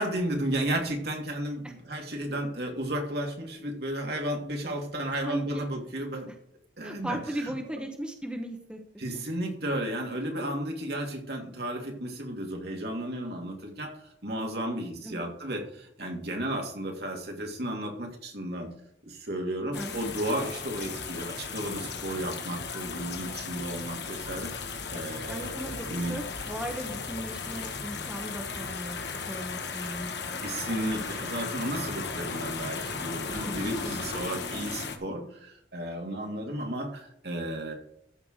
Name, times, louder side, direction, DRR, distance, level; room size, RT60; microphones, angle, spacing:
voice 1, 0.0-6.3 6.8-7.5 9.0-13.9 14.2-18.7 19.1-26.2 30.4-37.7, right 1 dB, 60° right, 1 dB, 2.8 m, -33 dB
voice 2, 5.0-5.6 6.3-6.4 6.8-9.2 15.0-15.3 19.7-20.2 25.3-30.5 33.5-33.6 33.8-34.0, equal, 5° right, 2 dB, 1.2 m, -38 dB
sound 1, 19.7-35.0, left 5 dB, 65° left, 1.6 m, -36 dB
14.0 x 4.8 x 6.5 m, 0.70 s
head